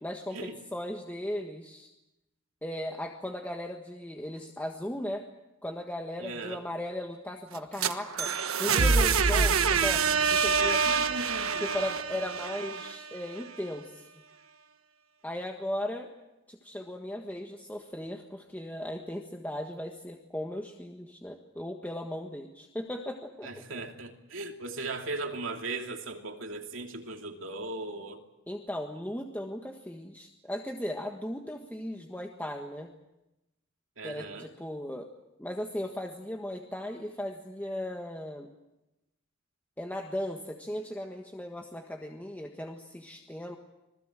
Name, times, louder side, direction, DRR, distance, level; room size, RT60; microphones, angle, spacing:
voice 1, 0.0-1.9 2.6-5.2 5.6-8.3 8.6-10.0 10.3-10.8 11.5-14.0 15.2-16.1 16.5-23.6 28.5-32.9 34.0-35.1 35.4-38.5 39.8-43.6, left 1 dB, 10° left, 2 dB, 1.5 m, -37 dB
voice 2, 6.2-6.6 10.8-11.7 23.4-28.2 34.0-34.5, right 3 dB, 65° right, 3 dB, 2.8 m, -38 dB
sound 1, 7.5-13.4, right 5 dB, 90° right, 1.3 m, -26 dB
26.5 x 20.0 x 7.7 m, 0.96 s
head